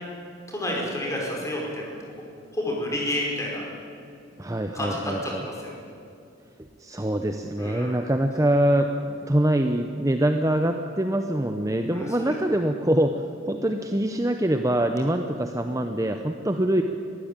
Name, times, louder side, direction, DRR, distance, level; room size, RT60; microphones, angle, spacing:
voice 1, 0.5-2.1 2.5-3.6 4.7-5.7 7.6-7.9 11.9-12.3, left 1 dB, 15° left, -2 dB, 5.1 m, -30 dB
voice 2, 4.4-5.4 6.8-16.8, right 1 dB, 15° right, 6 dB, 0.8 m, -24 dB
22.0 x 15.5 x 8.9 m, 2.5 s
head